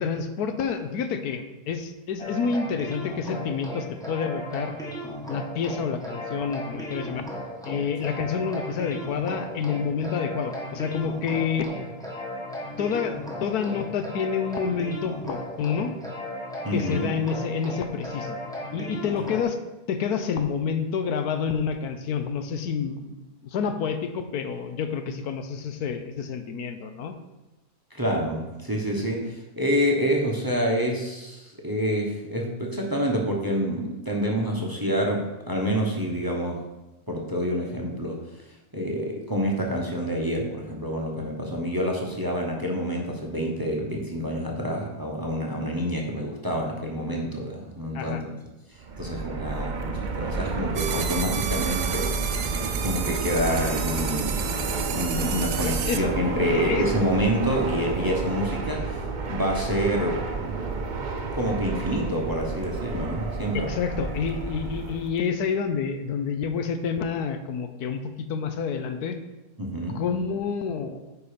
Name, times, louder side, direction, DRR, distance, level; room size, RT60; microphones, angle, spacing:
voice 1, 0.0-4.8 5.3-7.3 7.6-11.7 12.8-16.0 16.7-18.4 18.7-19.6 19.9-27.2 47.9-48.2 55.6-56.1 56.5-56.9 63.5-69.2 69.9-71.0, left 6 dB, 80° left, 8 dB, 1.3 m, -28 dB
sound 1, 2.2-19.4, equal, ahead, 1.4 m, -36 dB
voice 2, 16.6-17.1 27.9-36.6 37.1-38.2 38.7-48.3 48.7-52.2 52.8-54.5 54.9-60.8 61.3-63.7 69.6-70.0, equal, 15° right, -1 dB, 1.0 m, -27 dB
Fixed-wing aircraft airplane, 48.8-65.2, right 4 dB, 45° right, 0.6 m, -30 dB
sound 2, 50.8-56.0, right 8 dB, 80° right, 1.3 m, -32 dB
9.3 x 4.8 x 5.1 m, 1.0 s
omnidirectional pair, 1.6 m